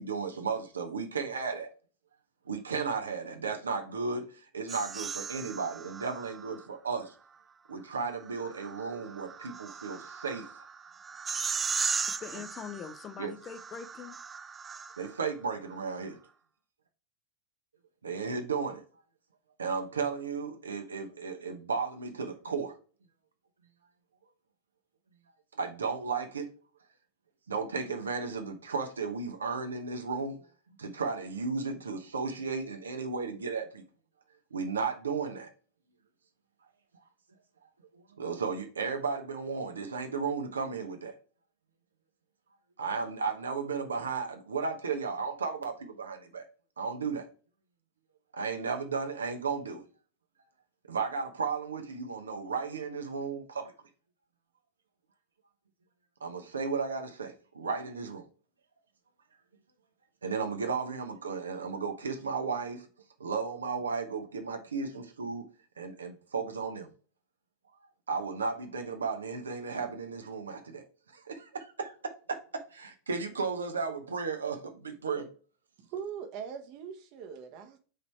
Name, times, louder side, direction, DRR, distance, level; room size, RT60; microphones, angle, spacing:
voice 1, 0.0-1.7 2.5-7.1 7.7-10.5 13.2-13.3 15.0-16.2 18.0-18.8 19.6-22.7 25.6-26.5 27.5-33.8 34.5-35.5 37.9-41.1 42.8-46.4 46.8-47.3 48.3-49.8 50.9-53.7 56.2-58.2 60.2-62.9 63.2-65.5 65.8-66.9 68.1-70.8 71.1-75.3, right 5 dB, 70° right, 1.0 m, -34 dB
sound 1, 4.7-6.6 8.1-15.3, right 5 dB, 15° right, 0.4 m, -37 dB
voice 2, 12.1-14.2, left 7 dB, 25° left, 0.7 m, -43 dB
voice 3, 75.8-77.8, right 7 dB, 45° right, 1.1 m, -41 dB
5.1 x 4.1 x 4.5 m
figure-of-eight pair, 90°, 0 cm